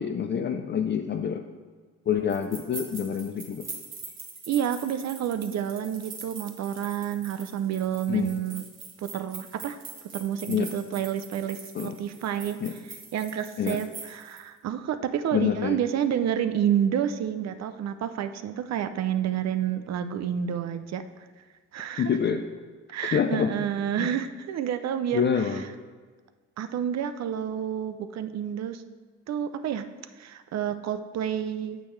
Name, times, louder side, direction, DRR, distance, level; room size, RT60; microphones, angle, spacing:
voice 1, 0.0-1.4 2.1-3.7 8.1-8.3 10.5-10.7 11.7-12.0 12.6-12.8 13.6-13.8 15.3-15.8 22.0-22.4 23.1-23.5 24.0-24.1 25.1-25.6, left 7 dB, 35° left, 6 dB, 0.4 m, -26 dB
sound 1, 2.3-14.4, right 4 dB, 45° right, 1.4 m, -43 dB
voice 2, 4.5-8.6 9.0-9.8 10.1-12.6 13.1-21.0 21.7-22.1 22.9-25.5 26.6-28.8 29.3-29.8 30.2-31.8, right 9 dB, 60° right, 10 dB, 0.5 m, -29 dB
8.9 x 6.4 x 3.2 m, 1.4 s
cardioid pair, 90°, 30 cm